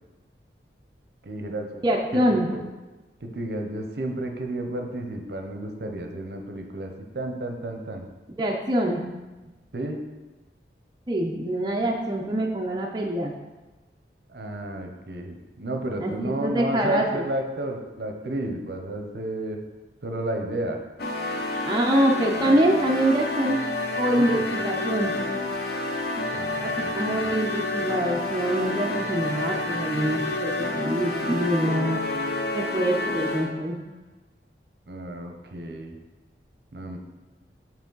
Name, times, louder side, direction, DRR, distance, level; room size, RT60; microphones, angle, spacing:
voice 1, 1.2-1.8 2.1-2.6 3.2-8.0 9.7-10.0 14.3-19.6 20.0-20.8 24.1-24.5 26.3-27.3 34.9-35.9 36.7-37.0, right 1 dB, 65° right, 4 dB, 0.7 m, -32 dB
voice 2, 1.8-2.5 8.4-9.0 11.1-13.3 16.0-17.2 21.6-23.6 23.9-25.1 26.6-32.0 32.5-33.8, right 1 dB, 25° right, -1 dB, 0.4 m, -25 dB
sound 1, 21.0-33.7, left 2 dB, 60° left, 0.6 m, -29 dB
6.0 x 4.4 x 3.9 m, 1.2 s
head